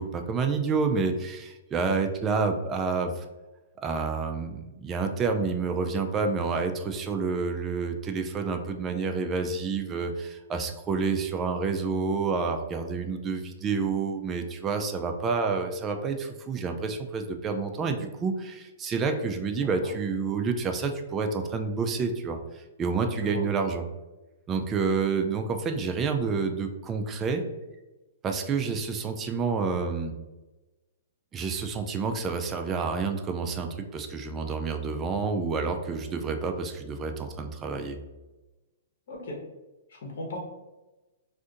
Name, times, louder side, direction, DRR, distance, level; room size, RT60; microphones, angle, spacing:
voice 1, 0.0-3.3 3.8-23.9 24.5-27.4 28.2-30.1 31.3-38.0, right 4 dB, 20° right, 5 dB, 0.3 m, -29 dB
voice 2, 23.1-23.4 39.1-39.4 39.9-40.4, left 2 dB, 65° left, -1 dB, 1.1 m, -37 dB
2.5 x 2.5 x 3.6 m, 1.1 s
hypercardioid pair, 150°, 0 cm